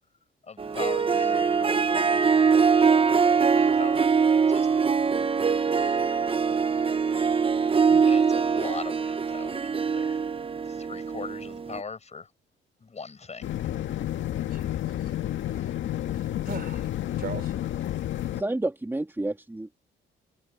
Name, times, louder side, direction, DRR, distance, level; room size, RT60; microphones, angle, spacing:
voice 1, 0.4-3.0 3.5-4.1 4.5-4.9 8.0-10.2 10.6-12.3 12.8-13.5 15.6-15.7, left 5 dB, 35° left, 5.6 m, -41 dB
Harp, 0.6-11.8, right 5 dB, 25° right, 0.9 m, -23 dB
voice 2, 6.5-6.9 7.9-8.0 14.5-14.7 15.0-15.1 15.6-15.7 16.1-16.9 17.2-17.5, right 6 dB, 50° right, 3.7 m, -40 dB
sound 1, 13.4-18.4, left 12 dB, 75° left, 1.8 m, -30 dB
voice 3, 18.3-19.7, right 2 dB, 10° right, 2.6 m, -30 dB
cardioid pair, 90°, 20 cm